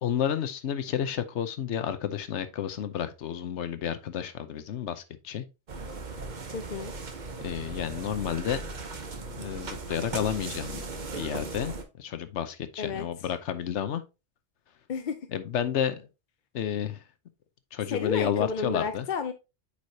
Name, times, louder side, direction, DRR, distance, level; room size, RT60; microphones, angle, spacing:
voice 1, 0.0-5.4 7.4-8.6 9.3-10.8 11.1-14.0 15.3-16.1 16.5-17.0 17.7-19.1, left 9 dB, 85° left, 1.1 m, -31 dB
sound 1, 5.7-11.8, right 3 dB, 45° right, 1.0 m, -38 dB
voice 2, 6.5-6.9 12.8-13.1 14.9-15.3 17.9-19.3, left 5 dB, 50° left, 0.6 m, -32 dB
8.4 x 4.9 x 2.7 m
omnidirectional pair, 1.1 m